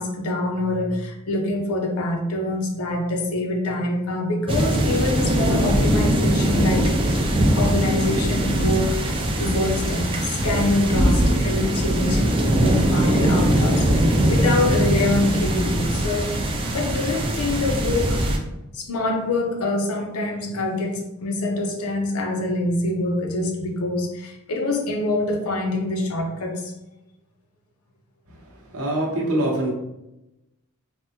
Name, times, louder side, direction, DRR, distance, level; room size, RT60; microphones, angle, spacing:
voice 1, 0.0-9.0 9.3-12.3 12.5-18.2 18.7-26.7, left 2 dB, 70° left, 1 dB, 0.6 m, -25 dB
sound 1, 4.5-18.4, right 1 dB, 25° right, 0.4 m, -21 dB
voice 2, 28.7-29.7, right 1 dB, 70° right, -2 dB, 0.8 m, -23 dB
3.5 x 2.0 x 2.7 m, 0.93 s
head